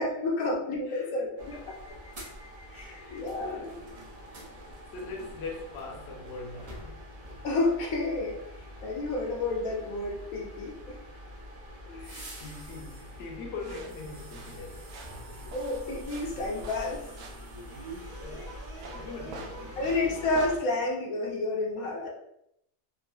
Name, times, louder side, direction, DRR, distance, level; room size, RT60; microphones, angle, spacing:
voice 1, 0.0-1.8 2.7-3.7 7.4-8.4 8.8-11.0 15.4-17.0 19.8-22.1, left 2 dB, 75° left, 1.1 m, -30 dB
sound 1, 1.4-20.6, equal, 45° right, 0.5 m, -44 dB
voice 2, 2.8-4.0 4.7-7.0 11.9-14.9 15.2-15.4 17.8-18.6 18.9-20.1, left 3 dB, 60° left, 0.8 m, -42 dB
sound 2, 13.6-20.6, right 3 dB, 70° right, 0.9 m, -47 dB
3.6 x 2.4 x 2.3 m
omnidirectional pair, 1.5 m